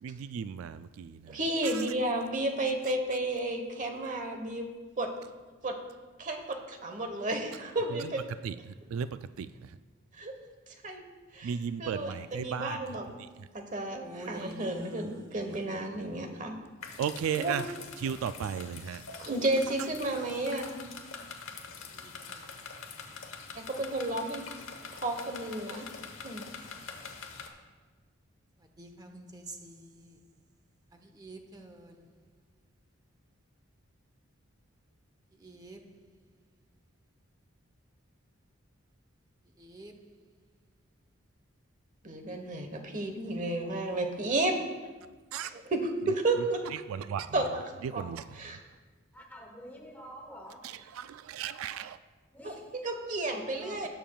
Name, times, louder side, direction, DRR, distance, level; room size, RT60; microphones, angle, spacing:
voice 1, 0.0-1.4 8.4-8.5 8.9-9.1 9.4-9.5 11.4-12.8 14.3-14.4 17.0-17.6 18.0-19.0 45.3-45.5 46.9-47.3 48.0-48.2 50.6-52.0, right 7 dB, 85° right, 0.3 m, -35 dB
voice 2, 1.3-5.1 5.6-5.8 6.2-8.2 10.1-10.3 10.8-11.0 11.3-13.1 13.5-16.5 17.4-17.5 19.2-20.8 23.5-24.5 24.9-25.9 26.2-26.5 42.0-44.6 45.4-46.6 47.3-47.6 47.9-48.0 48.3-48.6 52.4-53.9, right 2 dB, 40° right, 1.1 m, -32 dB
voice 3, 14.0-15.9 22.0-22.4 28.8-30.2 31.0-32.0 35.4-35.8 39.6-39.9 53.6-53.9, right 1 dB, 20° right, 0.9 m, -47 dB
sound 1, 16.8-27.5, left 5 dB, 70° left, 1.1 m, -45 dB
voice 4, 49.1-51.0 52.3-52.8, equal, 10° left, 1.2 m, -48 dB
18.5 x 7.1 x 2.3 m
head